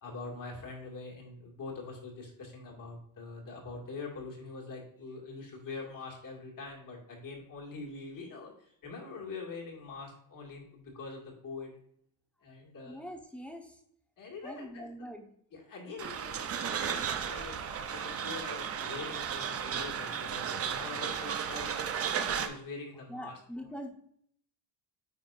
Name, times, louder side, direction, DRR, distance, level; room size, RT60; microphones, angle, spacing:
voice 1, 0.0-11.8 12.4-13.0 14.2-15.1 15.5-17.0 17.3-21.8 22.3-23.4, left 4 dB, 45° left, -1 dB, 2.3 m, -44 dB
voice 2, 12.8-13.8 14.4-15.3 23.1-23.9, equal, 5° left, 3 dB, 1.0 m, -43 dB
sound 1, 16.0-22.5, right 7 dB, 30° right, 0.6 m, -34 dB
9.3 x 4.1 x 2.5 m, 0.67 s
cardioid pair, 110°, 48 cm